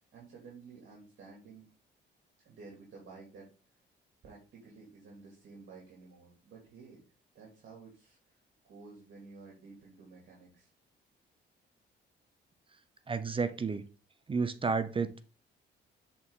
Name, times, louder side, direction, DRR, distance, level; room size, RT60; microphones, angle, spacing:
voice 1, 0.1-1.7 2.4-3.5 4.2-7.0 7.3-8.4 8.6-10.7, right 4 dB, 65° right, -3 dB, 2.3 m, -52 dB
voice 2, 13.1-13.8 14.3-15.2, right 4 dB, 25° right, 12 dB, 0.6 m, -31 dB
7.1 x 4.2 x 3.6 m, 0.34 s
cardioid pair, 90°, 20 cm